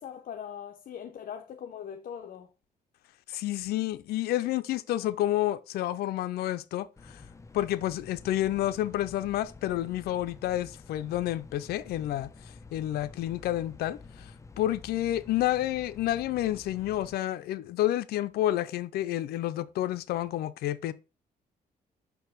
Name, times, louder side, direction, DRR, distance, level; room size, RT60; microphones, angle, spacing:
voice 1, 0.0-2.5, left 8 dB, 65° left, 0.8 m, -41 dB
voice 2, 3.3-7.2 7.5-20.9, left 14 dB, 90° left, 0.5 m, -30 dB
sound 1, 7.0-17.2, left 4 dB, 20° left, 0.5 m, -49 dB
5.6 x 4.7 x 3.9 m
cardioid pair, 95°, 16 cm